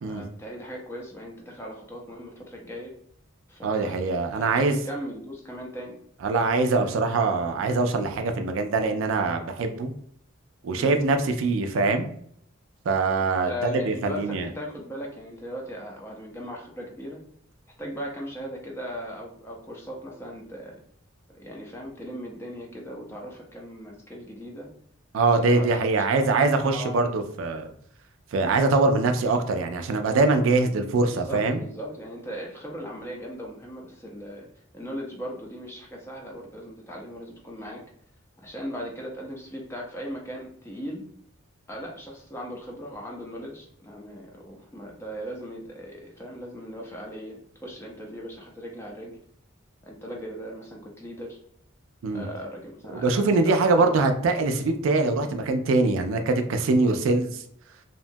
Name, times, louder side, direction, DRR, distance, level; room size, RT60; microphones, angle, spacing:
voice 1, 0.0-2.9 3.5-4.0 4.3-6.0 10.7-11.0 13.5-17.2 17.8-20.8 21.3-24.7 25.5-26.4 26.7-27.1 31.1-34.5 34.7-37.8 38.4-41.0 41.7-49.2 49.8-51.4 52.1-54.0, equal, 10° left, -1 dB, 0.4 m, -38 dB
voice 2, 3.6-4.8 6.2-9.9 10.6-12.1 12.9-14.5 25.1-27.7 28.3-31.6 52.0-52.3 52.9-57.4, right 3 dB, 70° right, 6 dB, 0.3 m, -23 dB
2.8 x 2.2 x 2.6 m, 0.65 s
head